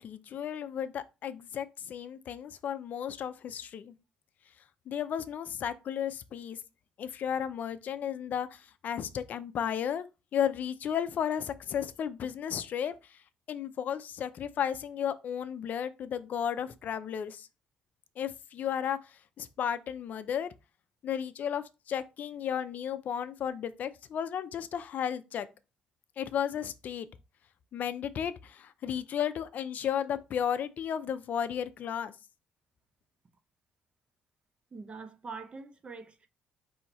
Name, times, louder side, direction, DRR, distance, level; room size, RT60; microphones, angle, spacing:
voice 1, 0.0-3.9 4.9-6.6 7.0-10.1 10.3-13.2 13.5-17.5 18.2-20.5 21.0-25.5 26.2-27.1 27.7-32.1, left 9 dB, 60° left, 0.4 m, -34 dB
voice 2, 34.7-36.3, right 4 dB, 35° right, 0.7 m, -44 dB
4.4 x 2.7 x 4.1 m
cardioid pair, 95°, 3 cm